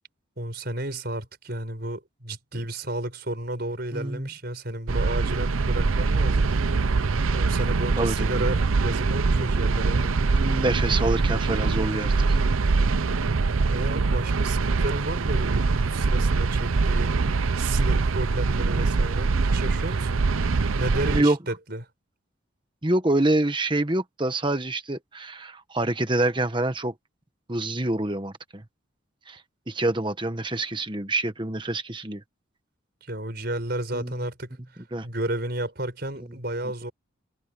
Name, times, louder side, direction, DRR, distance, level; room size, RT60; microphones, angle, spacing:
voice 1, 0.4-6.5 7.3-10.1 13.7-17.1 17.6-20.2 20.8-21.8 33.0-34.6 35.0-36.9, right 1 dB, 50° right, 5.5 m, -32 dB
voice 2, 3.9-4.3 8.0-8.5 9.4-9.5 10.0-12.4 21.0-21.4 22.8-26.9 27.5-28.6 29.3-29.4 29.7-32.2 33.9-34.2 34.9-35.1, right 2 dB, 25° right, 1.3 m, -26 dB
sound 1, 4.9-21.2, right 4 dB, 90° right, 0.7 m, -23 dB
head